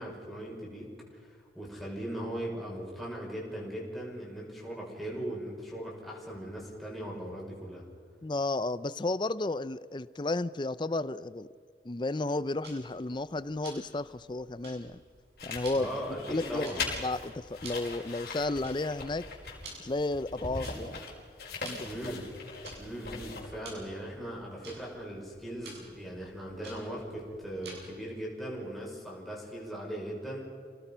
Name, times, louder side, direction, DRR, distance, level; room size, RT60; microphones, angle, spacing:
voice 1, 0.0-7.8 15.7-16.8 21.8-22.3 22.8-30.4, right 1 dB, ahead, -4 dB, 5.6 m, -39 dB
voice 2, 8.2-11.5 11.8-15.0 15.4-15.9 16.3-19.3 19.8-21.0 21.6-21.9, left 2 dB, 25° left, 16 dB, 0.5 m, -33 dB
Tick-tock, 12.6-28.1, right 2 dB, 75° right, 7.3 m, -52 dB
sound 1, 15.4-23.7, left 4 dB, 60° left, 5.3 m, -41 dB
28.0 x 19.0 x 5.6 m, 2.1 s
head